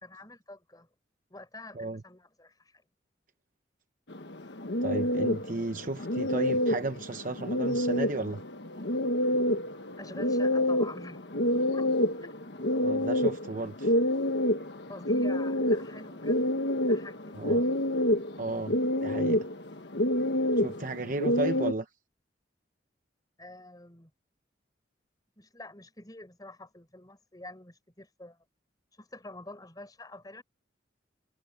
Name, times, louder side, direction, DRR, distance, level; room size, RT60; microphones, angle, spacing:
voice 1, 0.0-0.9 1.3-2.8 10.0-11.9 12.2-12.4 14.9-17.7 23.4-24.1 25.4-28.4 29.0-30.4, left 2 dB, 20° left, 4.5 m, -47 dB
sound 1, 4.1-21.7, left 1 dB, 70° left, 1.4 m, -28 dB
voice 2, 4.8-8.4 12.8-13.9 17.4-17.6 18.4-19.5 20.6-21.9, right 2 dB, 45° right, 0.9 m, -34 dB
head